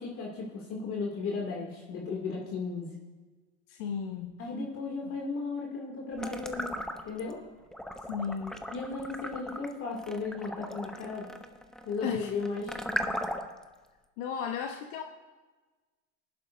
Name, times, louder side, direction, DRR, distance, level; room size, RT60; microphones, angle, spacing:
voice 1, 0.0-2.9 4.4-7.4 8.7-11.2 11.8-12.8, left 4 dB, 35° left, -1 dB, 2.4 m, -35 dB
voice 2, 3.7-4.5 5.0-5.1 8.1-8.6 12.0-12.3 14.2-15.0, left 7 dB, 55° left, 3 dB, 1.0 m, -35 dB
sound 1, 6.2-7.3 7.7-13.6, equal, ahead, 0.6 m, -37 dB
21.0 x 11.5 x 2.6 m, 1.3 s
hypercardioid pair, 115°, 38 cm